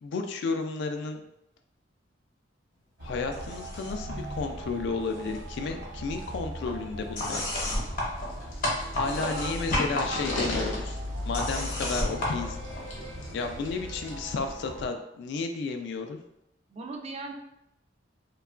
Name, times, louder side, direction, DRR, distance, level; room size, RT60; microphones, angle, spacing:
voice 1, 0.0-1.2 3.0-7.4 8.9-10.9 11.3-12.6 13.3-16.2, left 4 dB, 65° left, 6 dB, 0.3 m, -32 dB
sound 1, 3.0-14.9, equal, 70° right, 0.7 m, -39 dB
sound 2, 3.3-4.1 4.4-5.4 5.7-13.2, left 1 dB, 50° left, 0.8 m, -33 dB
sound 3, 7.3-14.1, left 1 dB, 85° left, 0.7 m, -40 dB
voice 2, 9.1-10.5 16.7-17.3, right 3 dB, 35° right, 2 dB, 0.3 m, -39 dB
2.8 x 2.3 x 2.3 m, 0.84 s
head